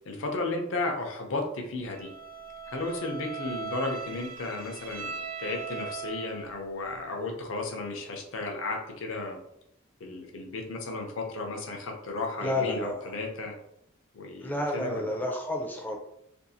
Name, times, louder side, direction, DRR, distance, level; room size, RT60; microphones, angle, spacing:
voice 1, 0.1-2.1 2.7-5.1 5.4-9.4 10.0-13.5 14.1-15.1, left 2 dB, 65° left, 2 dB, 0.6 m, -34 dB
Bowed string instrument, 1.9-6.6, right 5 dB, 65° right, 0.8 m, -39 dB
voice 2, 12.4-13.1 14.4-16.0, left 1 dB, 10° left, 1 dB, 0.4 m, -30 dB
2.6 x 2.3 x 2.7 m, 0.76 s
head